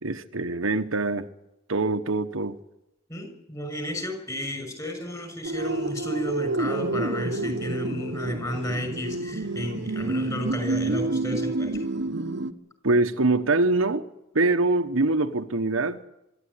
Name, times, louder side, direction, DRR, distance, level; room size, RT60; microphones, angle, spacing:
voice 1, 0.0-1.3 1.7-2.6 12.8-14.1 14.3-16.0, right 2 dB, 80° right, 1.2 m, -24 dB
voice 2, 3.1-11.8, left 1 dB, 20° left, 6.2 m, -32 dB
sound 1, 5.4-12.5, right 2 dB, 60° right, 1.2 m, -29 dB
24.5 x 13.0 x 9.8 m
head